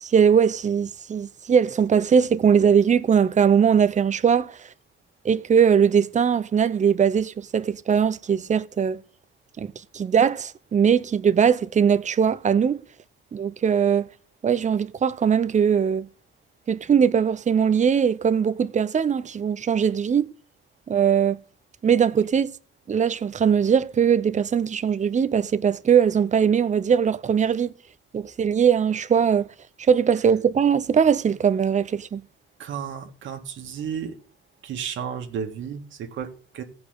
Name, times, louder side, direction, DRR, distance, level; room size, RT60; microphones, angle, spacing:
voice 1, 0.0-4.6 5.2-9.0 9.6-12.8 13.3-14.1 14.4-16.1 16.7-20.3 20.9-21.4 21.8-22.5 22.9-27.7 28.1-29.5 29.9-32.2, right 7 dB, 35° right, 0.8 m, -20 dB
voice 2, 32.6-34.1 34.6-36.6, right 7 dB, 75° right, 1.9 m, -33 dB
15.5 x 5.3 x 8.1 m
cardioid pair, 90°, 20 cm